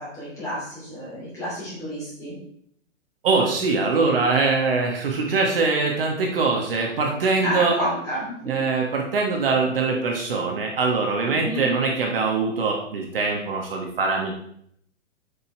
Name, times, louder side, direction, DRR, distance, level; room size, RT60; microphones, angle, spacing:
voice 1, 0.0-2.3 7.4-8.5 11.3-11.6, equal, 10° left, -8 dB, 2.8 m, -30 dB
voice 2, 3.2-7.8 8.4-14.3, right 4 dB, 45° right, 0 dB, 1.4 m, -23 dB
8.2 x 5.4 x 4.4 m, 0.69 s
hypercardioid pair, 180°, 39 cm